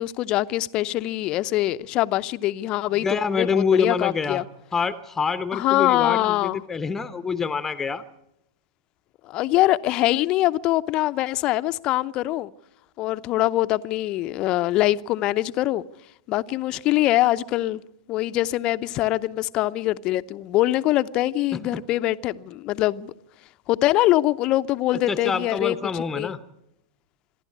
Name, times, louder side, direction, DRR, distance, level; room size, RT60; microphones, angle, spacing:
voice 1, 0.0-4.4 5.5-6.6 9.2-12.5 13.0-15.8 16.3-17.8 18.1-23.1 23.7-26.3, left 16 dB, 40° left, 0.7 m, -23 dB
voice 2, 3.0-4.4 4.7-8.0 21.5-21.6 25.1-26.4, left 5 dB, 15° left, 0.9 m, -26 dB
26.5 x 11.5 x 8.4 m
figure-of-eight pair, 100°, 2 cm